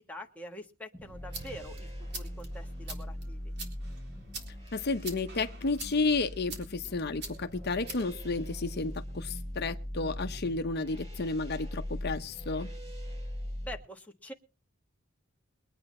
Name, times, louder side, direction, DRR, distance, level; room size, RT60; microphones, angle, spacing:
voice 1, 0.0-3.5 13.6-14.3, left 1 dB, 5° left, 1.5 m, -45 dB
sound 1, 0.9-13.7, equal, 30° right, 7.4 m, -41 dB
sound 2, 1.0-9.1, right 3 dB, 60° right, 3.7 m, -46 dB
voice 2, 4.7-12.7, left 3 dB, 55° left, 0.9 m, -32 dB
23.0 x 8.9 x 4.3 m
head